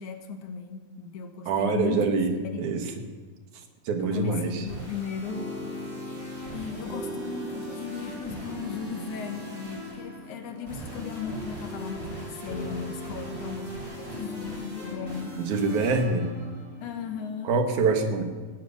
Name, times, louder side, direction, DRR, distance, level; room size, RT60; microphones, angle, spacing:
voice 1, 0.0-2.6 4.0-5.5 6.5-15.4 16.8-17.5, left 6 dB, 80° left, 6 dB, 2.7 m, -36 dB
voice 2, 1.5-2.8 3.9-4.6 15.4-16.3 17.4-18.2, right 4 dB, 80° right, 6 dB, 2.7 m, -25 dB
sound 1, 4.5-17.3, equal, 35° right, 6.5 m, -38 dB
16.5 x 6.7 x 9.5 m, 1.4 s
omnidirectional pair, 3.4 m